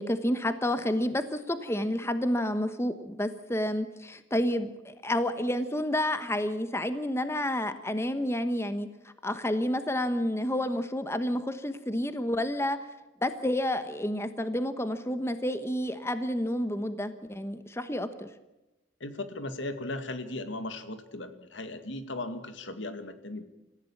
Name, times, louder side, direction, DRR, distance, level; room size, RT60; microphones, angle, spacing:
voice 1, 0.0-8.9 9.2-12.8 13.2-18.3, left 1 dB, 15° left, 10 dB, 1.0 m, -30 dB
voice 2, 19.0-23.4, left 2 dB, 75° left, 9 dB, 2.1 m, -37 dB
27.0 x 15.0 x 7.3 m, 1.0 s
head